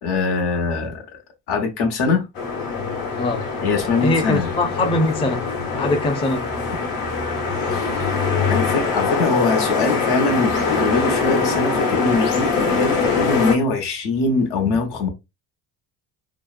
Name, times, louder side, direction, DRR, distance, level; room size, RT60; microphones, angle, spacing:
voice 1, 0.0-1.0 1.5-2.2 3.6-4.5 7.7-8.2 8.5-15.1, left 3 dB, 80° left, 0.9 m, -22 dB
sound 1, 2.4-13.5, left 4 dB, 55° left, 1.0 m, -23 dB
voice 2, 3.2-3.5 4.0-6.5, left 2 dB, 15° left, 0.4 m, -22 dB
2.8 x 2.0 x 2.3 m
cardioid pair, 105°, 40 cm